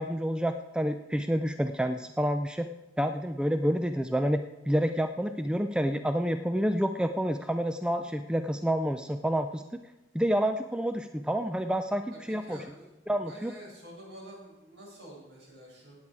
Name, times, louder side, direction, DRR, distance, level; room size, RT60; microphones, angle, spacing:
voice 1, 0.0-2.7 3.0-4.4 4.7-9.8 10.1-12.6 13.1-13.5, equal, 5° right, 8 dB, 0.3 m, -28 dB
voice 2, 12.1-12.9 13.3-16.0, right 1 dB, 60° right, -3 dB, 5.5 m, -48 dB
17.0 x 8.9 x 4.7 m, 1.0 s
head